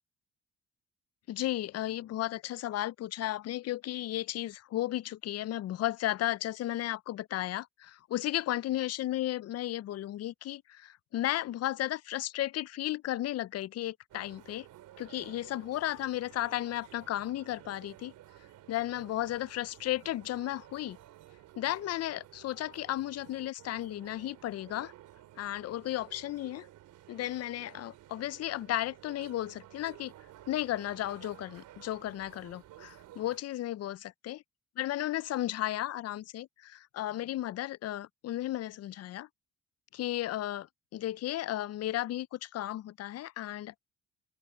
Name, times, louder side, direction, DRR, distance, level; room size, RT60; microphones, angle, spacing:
voice 1, 1.3-14.7 15.0-18.1 18.7-21.0 21.6-24.9 25.4-26.7 27.1-30.1 30.5-34.4 34.8-39.3 39.9-40.7 40.9-43.8, left 14 dB, 55° left, 0.5 m, -34 dB
sound 1, 14.1-33.4, right 14 dB, 85° right, 3.1 m, -54 dB
cardioid pair, 90°, 30 cm